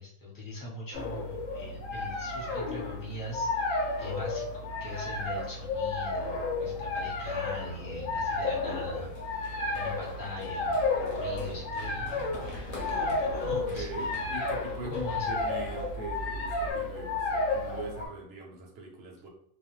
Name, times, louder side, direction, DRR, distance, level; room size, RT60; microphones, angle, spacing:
voice 1, 0.0-3.7 4.0-9.4 9.7-12.4 12.8-13.9 14.8-15.4, left 2 dB, 20° left, -5 dB, 0.7 m, -41 dB
sound 1, 0.9-18.1, left 3 dB, 75° left, 1.0 m, -32 dB
Run, 8.9-16.7, equal, 45° left, 0.9 m, -44 dB
voice 2, 13.5-19.3, right 2 dB, 60° right, 1 dB, 0.7 m, -42 dB
2.4 x 2.2 x 3.0 m, 0.71 s
omnidirectional pair, 1.4 m